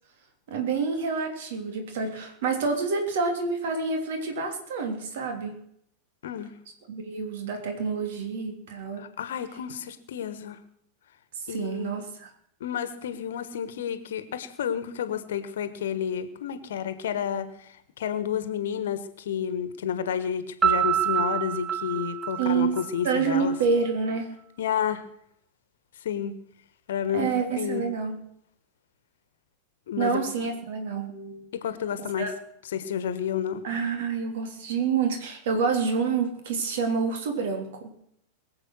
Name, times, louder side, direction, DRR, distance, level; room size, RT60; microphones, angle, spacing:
voice 1, 0.5-5.5 6.9-9.0 11.3-12.3 22.4-22.8 23.0-24.3 27.1-28.1 30.0-31.5 32.2-32.3 33.6-37.9, right 5 dB, 55° right, 4 dB, 3.2 m, -28 dB
voice 2, 9.0-10.6 11.5-12.0 12.6-23.5 24.6-25.0 26.0-26.4 26.9-27.8 29.9-30.2 31.5-32.3 32.7-33.6, left 8 dB, 60° left, 12 dB, 1.4 m, -30 dB
Piano, 20.6-23.4, right 9 dB, 15° right, 1.0 m, -26 dB
22.0 x 7.6 x 6.3 m, 0.72 s
figure-of-eight pair, 90°, 0 cm